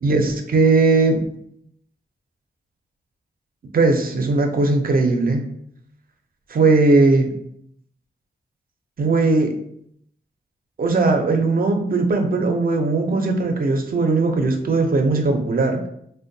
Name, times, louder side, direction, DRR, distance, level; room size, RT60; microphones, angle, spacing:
voice 1, 0.0-1.2 3.7-5.5 6.5-7.3 9.0-9.6 10.8-15.9, right 3 dB, 50° right, 4 dB, 0.5 m, -18 dB
4.3 x 2.1 x 2.6 m, 0.70 s
wide cardioid pair, 115°, 19 cm